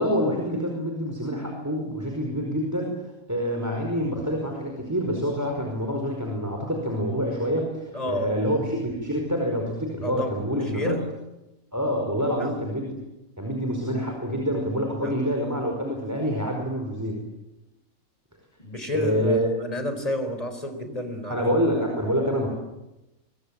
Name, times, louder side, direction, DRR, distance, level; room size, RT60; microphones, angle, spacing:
voice 1, 0.0-3.0 3.3-11.0 11.7-12.9 13.4-17.2 18.9-19.5 21.3-22.5, equal, 10° right, 1 dB, 5.0 m, -26 dB
voice 2, 7.9-8.4 10.0-11.1 12.4-12.5 15.0-15.1 18.6-21.4, left 1 dB, 25° left, 8 dB, 4.4 m, -30 dB
24.5 x 23.5 x 9.0 m, 0.94 s
omnidirectional pair, 1.5 m